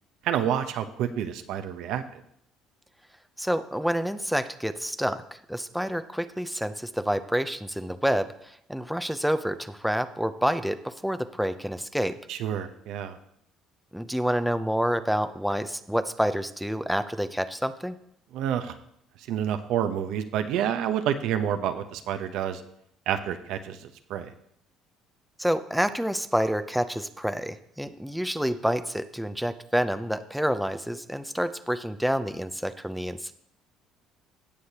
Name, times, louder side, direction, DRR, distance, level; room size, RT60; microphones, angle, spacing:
voice 1, 0.2-2.2 12.3-13.2 18.3-18.7 19.3-22.6 23.1-24.3, right 9 dB, 75° right, 8 dB, 0.8 m, -29 dB
voice 2, 3.4-5.2 5.5-12.2 13.9-18.0 25.4-33.3, equal, ahead, 10 dB, 0.6 m, -28 dB
17.0 x 6.5 x 2.9 m, 0.71 s
supercardioid pair, 90°, 0 cm